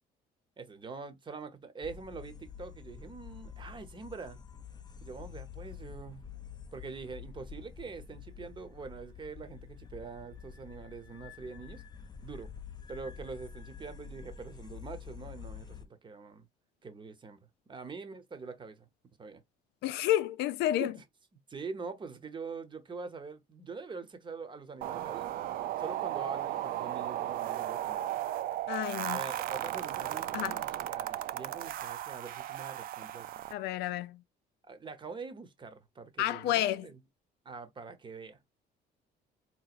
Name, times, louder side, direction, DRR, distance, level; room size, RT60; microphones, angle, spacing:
voice 1, 0.6-4.4 5.0-6.2 6.7-11.8 12.2-12.5 12.9-16.5 16.8-17.4 17.7-18.9 19.2-19.4 20.8-21.0 21.5-25.3 25.8-28.2 29.0-33.5 34.6-37.0 37.4-38.4, right 4 dB, 30° right, 0.9 m, -44 dB
sound 1, 1.8-15.9, left 7 dB, 25° left, 0.5 m, -48 dB
voice 2, 19.8-20.9 28.7-29.2 30.3-30.6 33.5-34.2 36.2-36.9, left 13 dB, 80° left, 0.4 m, -30 dB
sound 2, 24.8-33.5, right 13 dB, 60° right, 0.4 m, -35 dB
4.0 x 2.9 x 2.4 m
cardioid pair, 110°, 17 cm